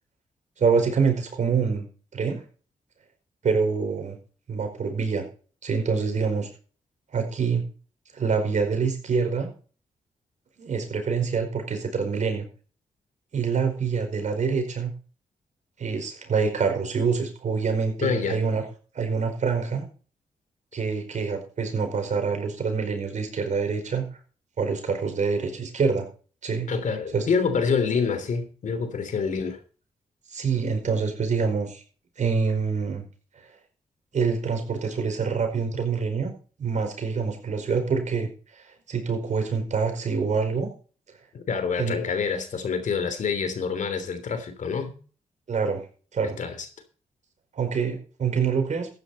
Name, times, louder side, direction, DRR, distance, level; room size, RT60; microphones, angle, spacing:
voice 1, 0.6-1.8 2.1-2.4 3.4-4.2 4.5-5.2 5.6-6.5 7.1-7.6 8.1-9.5 10.6-12.5 13.3-14.9 15.8-18.6 18.9-19.9 20.7-24.1 24.6-26.1 26.4-26.7 27.1-27.2 30.3-31.8 32.2-33.0 34.1-36.3 36.6-40.7 41.8-42.0 45.5-45.8 46.1-46.4 47.5-48.9, right 5 dB, 60° right, 5.0 m, -26 dB
voice 2, 18.0-18.4 26.7-29.6 41.3-44.9 46.4-46.7, left 5 dB, 65° left, 3.2 m, -27 dB
14.0 x 10.0 x 4.3 m
supercardioid pair, 50°, 14 cm